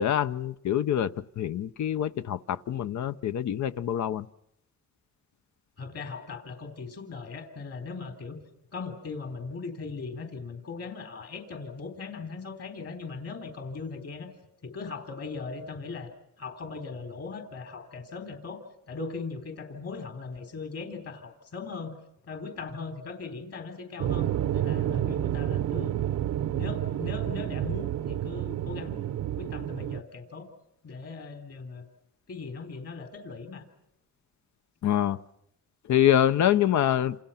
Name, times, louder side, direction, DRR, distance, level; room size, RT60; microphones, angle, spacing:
voice 1, 0.0-4.3 34.8-35.2 35.9-37.2, left 10 dB, 70° left, 12 dB, 0.9 m, -25 dB
voice 2, 5.8-8.4 8.7-14.3 14.6-16.1 16.4-18.6 18.9-22.0 22.2-26.1 26.5-29.0 29.4-30.5 30.8-31.8 32.3-33.6, left 4 dB, 55° left, 6 dB, 3.8 m, -39 dB
sound 1, 24.0-30.0, right 11 dB, 80° right, 0.9 m, -29 dB
28.5 x 27.5 x 5.8 m, 0.80 s
cardioid pair, 110°, 30 cm